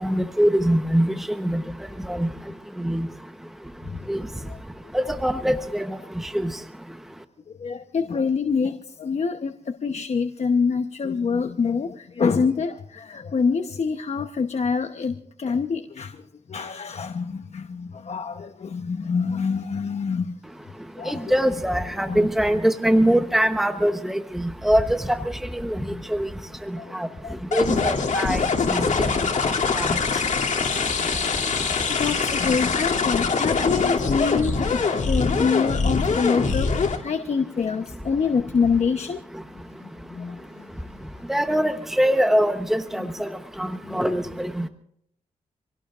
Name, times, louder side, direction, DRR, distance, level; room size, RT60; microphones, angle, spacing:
voice 1, 0.0-1.6 2.1-2.3 2.8-3.1 4.1-4.2 4.9-6.0 6.4-6.5 21.1-25.2 25.5-25.8 26.1-26.3 26.9-27.1 27.5-28.4 28.7-28.8 29.7-29.9 41.3-43.3 43.6-44.7, equal, ahead, 8 dB, 1.0 m, -22 dB
voice 2, 7.5-20.4 21.0-21.3 22.1-22.3 25.9-26.0 26.7-27.3 31.9-39.2 39.5-41.1 43.0-43.1 43.8-44.0, left 5 dB, 55° left, 7 dB, 1.0 m, -26 dB
sound 1, 27.5-37.0, left 5 dB, 75° left, 2.8 m, -23 dB
26.5 x 17.5 x 2.5 m, 0.71 s
cardioid pair, 75°, 13 cm